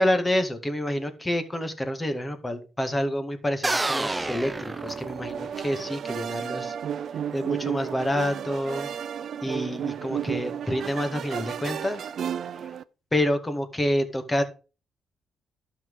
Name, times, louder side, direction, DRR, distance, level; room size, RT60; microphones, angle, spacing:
voice 1, 0.0-6.7 7.3-8.9 9.4-12.1 12.6-12.7 13.1-14.4, left 1 dB, 15° left, 8 dB, 2.0 m, -28 dB
sound 1, 3.6-5.6, right 2 dB, 15° right, 0.6 m, -29 dB
sound 2, 4.6-12.8, right 8 dB, 60° right, 0.6 m, -33 dB
12.0 x 6.1 x 4.9 m, 0.33 s
cardioid pair, 90°, 0 cm